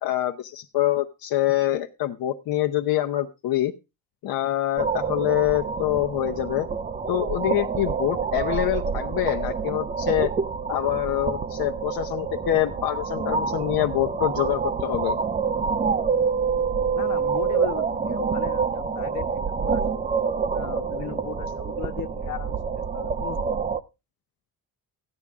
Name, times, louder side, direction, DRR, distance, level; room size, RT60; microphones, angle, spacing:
voice 1, 0.0-3.7 4.2-6.7 7.1-10.3 10.7-15.2, left 13 dB, 90° left, 4 dB, 1.0 m, -25 dB
sound 1, 4.8-23.8, right 5 dB, 20° right, 0.6 m, -27 dB
voice 2, 17.0-20.0 20.5-23.5, left 8 dB, 60° left, 8 dB, 1.4 m, -37 dB
14.5 x 9.9 x 3.6 m, 0.27 s
cardioid pair, 175°, 35 cm